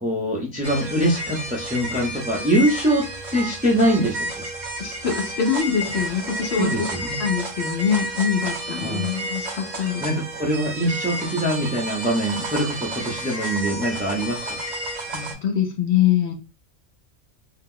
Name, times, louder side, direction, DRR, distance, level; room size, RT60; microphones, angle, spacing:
voice 1, 0.0-3.1 3.3-4.4 6.6-7.2 8.8-9.1 10.0-14.6, right 1 dB, 10° right, -1 dB, 0.5 m, -23 dB
sound 1, 0.6-15.3, right 1 dB, 40° right, 0.8 m, -31 dB
voice 2, 4.8-10.3 15.1-16.3, left 8 dB, 60° left, 3 dB, 0.9 m, -24 dB
2.8 x 2.0 x 3.6 m, 0.30 s
omnidirectional pair, 1.3 m